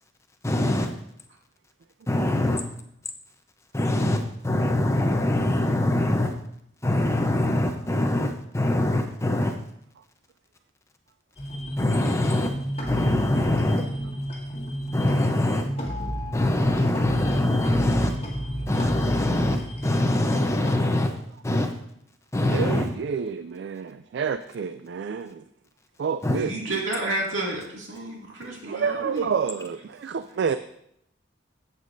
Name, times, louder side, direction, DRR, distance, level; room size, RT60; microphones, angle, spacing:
voice 1, 0.4-0.9 2.1-2.6 3.7-6.3 6.8-9.6 11.8-12.5 12.9-13.8 14.9-15.7 16.3-18.2 18.7-21.1 21.4-21.7 22.3-22.9 26.2-26.4, left 1 dB, 15° left, 0.7 m, -23 dB
sound 1, 11.4-20.7, equal, 30° left, 1.8 m, -32 dB
voice 2, 22.5-25.5 26.0-26.5 28.6-30.6, right 6 dB, 65° right, 0.3 m, -29 dB
voice 3, 26.3-29.3, right 2 dB, 80° right, 2.3 m, -30 dB
12.5 x 8.3 x 2.6 m
head